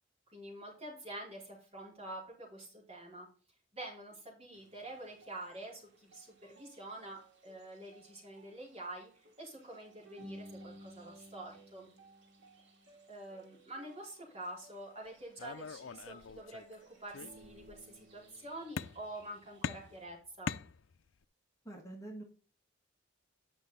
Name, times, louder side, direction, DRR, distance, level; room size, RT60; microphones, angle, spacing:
voice 1, 0.3-3.3 3.7-11.9 13.1-20.5, right 1 dB, 30° right, -3 dB, 4.3 m, -47 dB
sound 1, 4.5-20.1, right 1 dB, 60° right, 2.6 m, -58 dB
sound 2, 15.4-16.8 17.1-17.8 18.8-19.3 19.6-21.2, left 6 dB, 75° left, 0.5 m, -42 dB
voice 2, 21.6-22.2, right 2 dB, 15° left, 0 dB, 1.8 m, -45 dB
9.7 x 6.1 x 4.1 m, 0.38 s
head